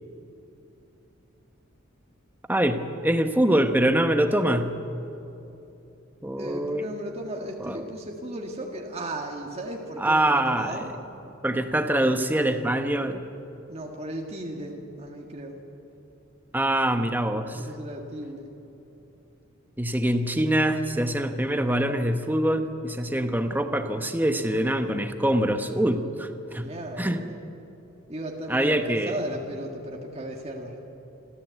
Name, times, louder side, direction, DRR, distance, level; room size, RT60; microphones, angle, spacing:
voice 1, 2.5-4.8 6.2-6.9 7.6-7.9 10.0-10.9 11.4-13.2 16.5-17.7 19.8-26.7 27.0-27.2 28.5-29.2, right 1 dB, 10° right, 7 dB, 1.1 m, -24 dB
voice 2, 6.3-10.9 13.7-15.6 17.5-18.5 26.5-27.4 28.1-30.7, right 1 dB, 30° right, 0 dB, 1.8 m, -36 dB
26.0 x 14.0 x 8.3 m, 3.0 s
head